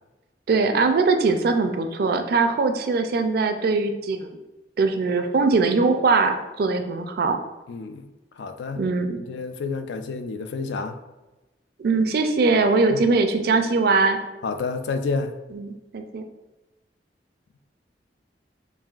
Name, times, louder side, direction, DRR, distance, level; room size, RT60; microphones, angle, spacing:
voice 1, 0.5-4.4 4.8-7.4 8.8-9.2 11.8-14.2 15.5-16.2, right 4 dB, 60° right, 6 dB, 0.4 m, -21 dB
voice 2, 7.7-8.1 8.4-8.8 9.2-11.0 12.9-13.1 14.4-15.3, left 4 dB, 80° left, 8 dB, 0.4 m, -29 dB
5.4 x 2.6 x 2.4 m, 1.1 s
head